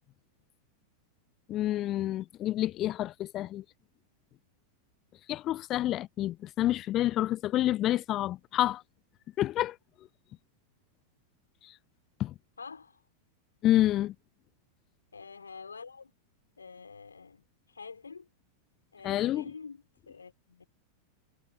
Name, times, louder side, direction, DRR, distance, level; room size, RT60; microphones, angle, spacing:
voice 1, 1.5-3.6 5.3-8.8 9.4-9.8 12.2-12.3 13.6-14.1 19.0-19.5, left 14 dB, 35° left, 0.6 m, -28 dB
voice 2, 12.6-13.0 15.1-16.1 16.6-18.3 18.9-20.7, left 5 dB, 75° left, 5.4 m, -47 dB
figure-of-eight pair, 90°, 0 cm